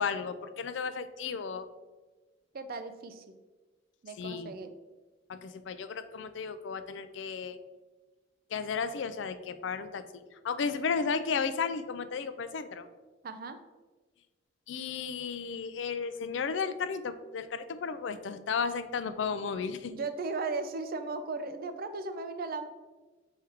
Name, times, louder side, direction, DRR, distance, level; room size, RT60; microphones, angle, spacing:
voice 1, 0.0-1.7 4.2-4.5 5.3-7.6 8.5-12.8 14.7-19.9, left 5 dB, 70° left, 11 dB, 0.4 m, -34 dB
voice 2, 2.5-3.2 4.0-4.7 13.2-13.6 19.9-22.7, right 3 dB, 50° right, 9 dB, 0.5 m, -36 dB
6.2 x 4.6 x 3.4 m, 1.3 s
head